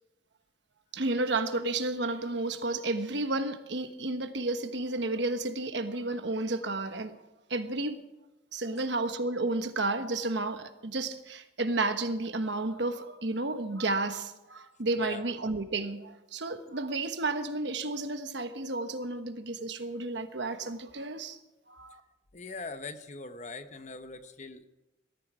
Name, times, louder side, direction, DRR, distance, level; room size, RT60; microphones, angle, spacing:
voice 1, 0.9-7.1 7.5-8.0 8.5-21.4 21.7-22.0, right 2 dB, 65° right, 1.2 m, -32 dB
voice 2, 14.9-15.3 22.3-24.7, left 3 dB, 35° left, 0.9 m, -42 dB
20.0 x 13.0 x 4.9 m
head